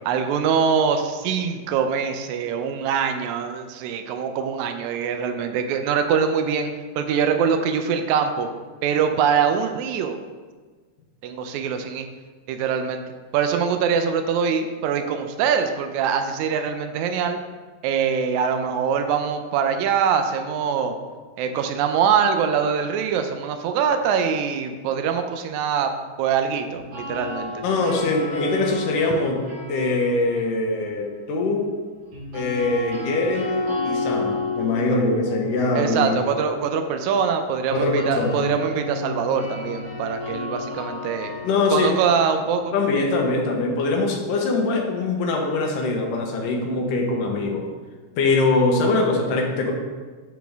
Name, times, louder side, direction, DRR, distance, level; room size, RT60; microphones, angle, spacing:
voice 1, 0.0-8.5 8.8-10.2 11.2-12.1 12.5-13.0 13.3-17.4 17.8-21.0 21.4-25.9 26.2-27.5 29.1-29.2 35.7-41.3 41.7-42.7, right 7 dB, 80° right, 6 dB, 1.7 m, -23 dB
sound 1, 26.7-30.9 32.1-44.0, left 3 dB, 65° right, 4.0 m, -32 dB
voice 2, 27.6-29.4 29.7-31.7 32.3-36.1 37.7-38.4 41.4-41.9 42.7-47.6 48.2-49.7, left 3 dB, 75° left, 1 dB, 2.6 m, -22 dB
12.0 x 4.2 x 3.5 m, 1.4 s
omnidirectional pair, 3.9 m